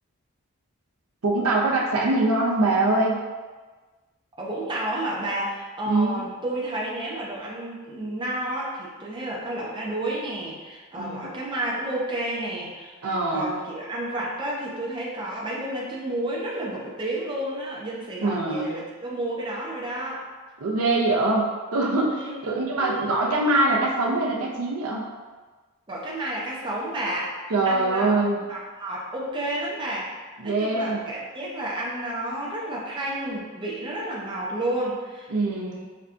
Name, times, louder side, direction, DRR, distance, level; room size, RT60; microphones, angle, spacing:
voice 1, 1.2-3.2 5.9-6.2 11.0-11.3 13.0-13.5 18.2-18.7 20.6-25.1 27.5-28.4 30.4-31.0 35.3-35.7, right 2 dB, 80° right, -1 dB, 0.6 m, -23 dB
voice 2, 4.4-20.2 22.2-23.3 25.9-27.3 27.7-28.2 28.5-30.1 30.4-35.9, right 1 dB, 20° right, -4 dB, 0.5 m, -31 dB
5.5 x 2.3 x 2.5 m, 1.3 s
head